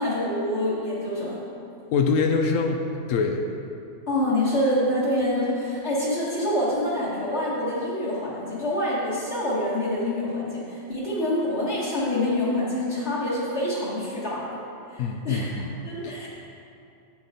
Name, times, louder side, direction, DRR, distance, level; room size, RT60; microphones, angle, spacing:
voice 1, 0.0-1.4 4.1-14.6 14.9-15.5 15.8-16.3, left 1 dB, 60° left, -9 dB, 1.8 m, -26 dB
voice 2, 1.9-2.8 3.1-3.4 15.0-15.7 16.0-16.3, left 5 dB, 90° left, 4 dB, 1.0 m, -24 dB
8.6 x 7.5 x 4.1 m, 2.6 s
omnidirectional pair, 1.3 m